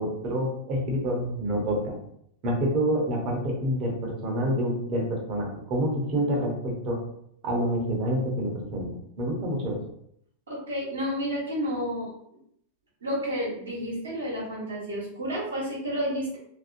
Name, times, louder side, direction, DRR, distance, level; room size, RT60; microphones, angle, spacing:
voice 1, 0.0-2.0 2.4-7.0 7.4-8.9 9.2-9.8, equal, 35° right, -1 dB, 0.9 m, -27 dB
voice 2, 10.5-12.1 13.0-16.4, equal, 70° right, -5 dB, 1.0 m, -30 dB
2.8 x 2.5 x 2.6 m, 0.71 s
figure-of-eight pair, 90°, 0 cm